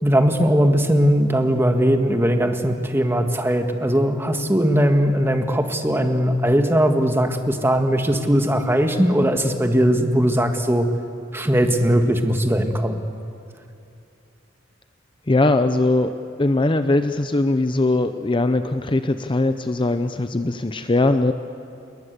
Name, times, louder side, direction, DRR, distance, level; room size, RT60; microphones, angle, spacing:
voice 1, 0.0-10.9 11.3-13.0, equal, 15° right, 5 dB, 1.7 m, -19 dB
voice 2, 15.3-16.1 16.4-21.3, left 2 dB, 25° left, 9 dB, 0.7 m, -20 dB
28.0 x 22.0 x 8.2 m, 2.6 s
head